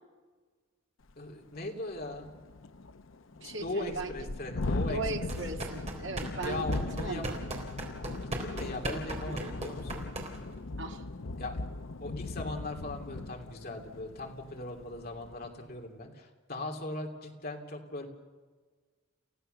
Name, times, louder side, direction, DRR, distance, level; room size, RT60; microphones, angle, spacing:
Thunderstorm, 1.1-1.2 1.6-1.7 1.9-15.6, left 2 dB, 70° left, 0.7 m, -39 dB
voice 1, 1.2-2.3 3.4-5.3 6.4-7.3 8.2-10.1 11.4-11.6 12.0-18.1, left 2 dB, 45° left, 2 dB, 3.1 m, -39 dB
voice 2, 3.4-4.2 4.8-7.4 9.3-9.5 10.8-11.1, right 3 dB, 60° right, 4 dB, 1.9 m, -38 dB
sound 1, 5.2-10.6, right 1 dB, 30° right, 3.7 m, -38 dB
29.5 x 16.0 x 6.8 m, 1.4 s
head